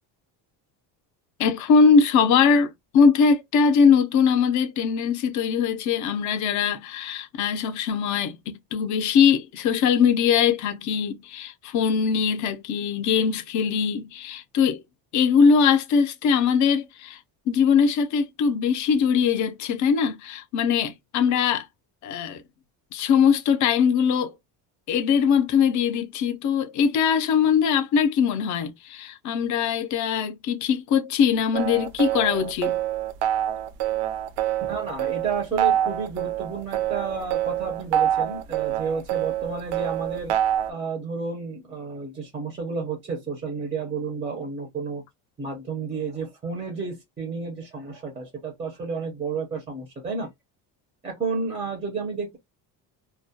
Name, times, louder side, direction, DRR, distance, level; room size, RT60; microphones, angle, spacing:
voice 1, 1.4-14.8 15.1-17.2 17.5-21.6 22.0-22.4 22.9-24.3 24.9-32.8, left 6 dB, 45° left, 0.4 m, -21 dB
sound 1, 31.5-40.7, right 11 dB, 80° right, 0.5 m, -26 dB
voice 2, 34.6-40.3 40.7-45.0 45.4-50.3 51.0-52.4, right 4 dB, 15° right, 0.4 m, -31 dB
2.2 x 2.1 x 2.6 m
cardioid pair, 170°, 41 cm